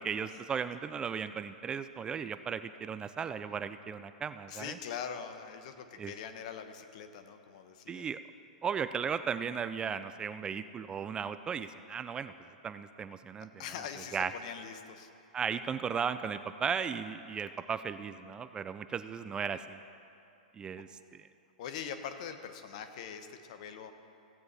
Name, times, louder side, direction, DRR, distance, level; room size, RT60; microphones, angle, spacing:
voice 1, 0.0-4.8 6.0-6.1 7.9-8.2 8.6-12.3 12.6-13.5 14.1-14.3 15.3-19.8 20.5-21.2, right 6 dB, 20° right, 12 dB, 0.3 m, -36 dB
voice 2, 4.5-8.1 13.6-15.1 21.6-23.9, left 7 dB, 55° left, 8 dB, 1.0 m, -42 dB
15.5 x 8.6 x 4.2 m, 2.6 s
hypercardioid pair, 115°, 4 cm